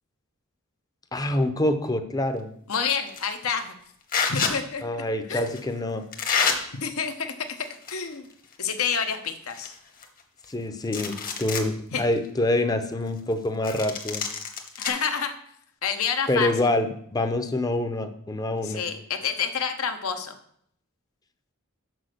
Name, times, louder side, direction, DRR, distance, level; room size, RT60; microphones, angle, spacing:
voice 1, 1.1-2.5 4.8-6.0 10.5-14.3 16.3-18.8, left 1 dB, 20° left, 8 dB, 0.6 m, -26 dB
voice 2, 2.7-3.7 4.3-5.0 5.3-5.5 6.8-7.5 7.9-8.3 8.6-9.7 11.9-12.0 14.8-15.3 15.8-16.5 18.6-20.3, left 6 dB, 80° left, 7 dB, 0.9 m, -28 dB
sound 1, 3.1-3.3 4.1-4.5 5.5-5.6 6.1-6.6 7.5-8.1 8.4-8.5 9.1-9.2 9.5-10.5 10.8-11.7 12.2-12.3 13.6-14.9, left 6 dB, 40° left, 1.0 m, -28 dB
6.2 x 5.1 x 6.5 m, 0.67 s
head